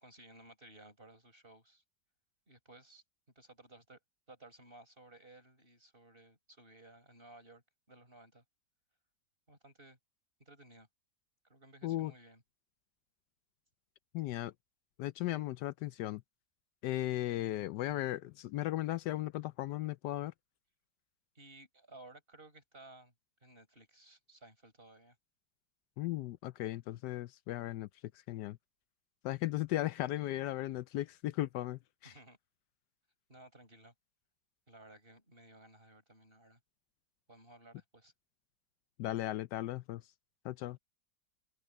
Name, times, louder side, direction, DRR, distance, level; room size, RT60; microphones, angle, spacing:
voice 1, 0.0-1.8 2.5-3.0 3.4-4.0 4.3-7.6 7.9-8.4 9.5-10.0 10.4-10.9 11.5-12.4 21.3-23.1 23.4-25.2 32.0-32.4 33.3-33.9 34.7-36.6 37.3-38.1, right 2 dB, 30° right, 7.8 m, -57 dB
voice 2, 14.1-14.5 15.0-16.2 16.8-20.3 26.0-27.9 28.3-28.6 29.2-32.1 39.0-40.0 40.4-40.8, left 15 dB, 80° left, 1.1 m, -36 dB
open air
omnidirectional pair, 1.9 m